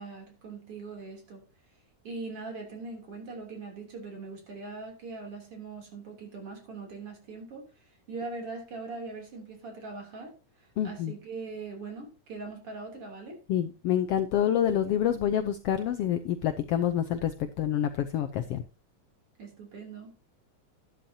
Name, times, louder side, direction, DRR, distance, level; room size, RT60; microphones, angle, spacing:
voice 1, 0.0-1.5 2.0-10.3 10.6-13.4 19.4-20.1, right 3 dB, 50° right, 3.9 m, -41 dB
voice 2, 10.8-11.1 13.5-17.3 17.6-18.6, left 10 dB, 75° left, 1.4 m, -27 dB
12.0 x 12.0 x 2.8 m
omnidirectional pair, 3.4 m